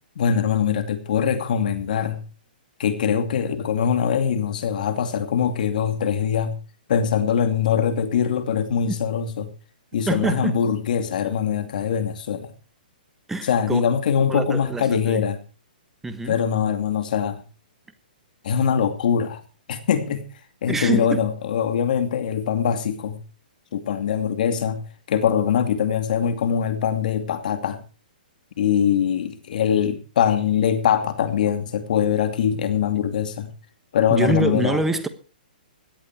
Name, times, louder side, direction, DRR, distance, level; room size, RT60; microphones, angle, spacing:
voice 1, 0.2-2.2 2.8-6.6 6.9-9.5 9.9-12.5 13.4-15.4 16.2-17.4 18.4-19.4 19.7-20.2 20.6-23.2 23.7-24.8 25.1-27.8 28.6-33.5 33.9-34.8, left 8 dB, 60° left, 2.6 m, -22 dB
voice 2, 10.1-10.6 13.3-13.9 14.3-15.3 16.0-16.4 20.7-21.2 34.1-35.1, right 2 dB, 5° right, 1.3 m, -25 dB
17.5 x 11.0 x 4.8 m
hypercardioid pair, 150°, 5 cm